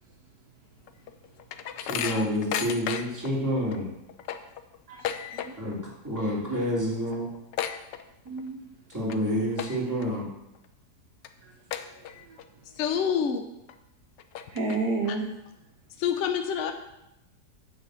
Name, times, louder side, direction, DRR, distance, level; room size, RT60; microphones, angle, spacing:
sound 1, 0.9-3.3 3.7-3.8 4.1-5.8 6.1-6.4 6.7-6.8 7.1-8.5 8.9-9.2 9.5-10.0 10.5-10.6 11.2-11.3 11.7-12.4 12.9-13.0 13.7-13.8 14.2-15.1, left 9 dB, 85° left, 1.3 m, -34 dB
voice 1, 1.8-3.9 5.6-5.8 6.0-7.3 8.9-10.3, equal, 10° right, -6 dB, 2.9 m, -28 dB
voice 2, 4.9-5.7 8.2-8.7 11.4-12.5 14.5-15.3, right 3 dB, 65° right, 1 dB, 1.5 m, -33 dB
voice 3, 12.8-13.4 16.0-16.7, left 7 dB, 60° left, 6 dB, 0.8 m, -26 dB
9.2 x 4.8 x 7.7 m, 0.88 s
omnidirectional pair, 1.9 m